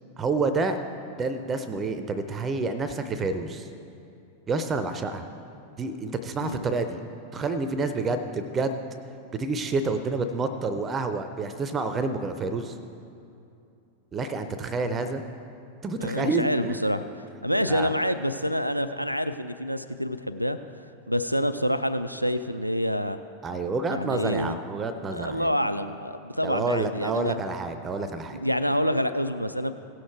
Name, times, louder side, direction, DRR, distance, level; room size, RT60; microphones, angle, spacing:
voice 1, 0.2-0.8 1.2-3.7 4.5-5.3 5.8-7.0 7.3-8.8 9.4-12.8 14.1-15.2 15.8-16.8 17.7-17.9 23.4-25.5 26.4-28.4, right 3 dB, 20° right, 10 dB, 0.6 m, -28 dB
voice 2, 16.0-17.0 17.4-20.6 21.1-23.2 23.9-24.6 25.1-27.4 28.3-29.7, equal, 90° right, 11 dB, 0.3 m, -27 dB
17.0 x 6.4 x 4.5 m, 2.7 s
figure-of-eight pair, 90°, 0 cm